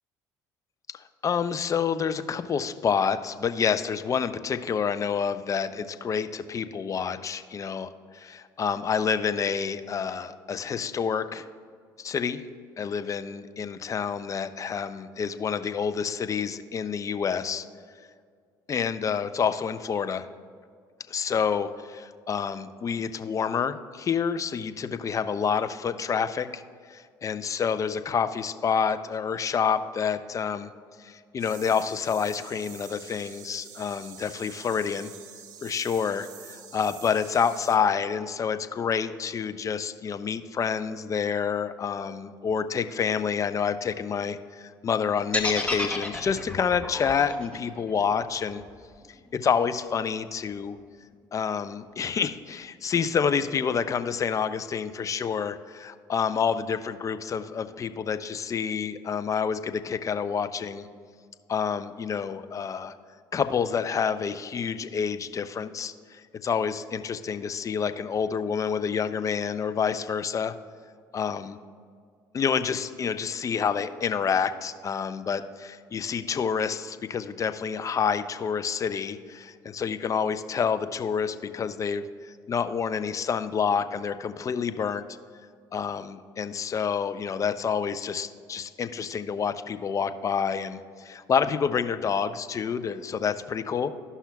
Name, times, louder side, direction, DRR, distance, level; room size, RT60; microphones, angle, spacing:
voice 1, 0.9-11.4 12.0-12.4 12.8-17.6 18.7-20.3 21.1-26.6 26.9-30.7 31.0-35.1 35.6-48.6 49.3-50.8 51.3-60.9 61.5-62.9 63.3-70.6 71.1-71.6 72.3-85.0 85.7-93.9, left 6 dB, 35° left, 11 dB, 0.5 m, -28 dB
sound 1, 31.4-37.8, right 9 dB, 85° right, 0.6 m, -46 dB
sound 2, 45.3-49.4, left 2 dB, 15° left, 1.2 m, -32 dB
13.0 x 5.6 x 2.3 m, 2.1 s
hypercardioid pair, 65°, 9 cm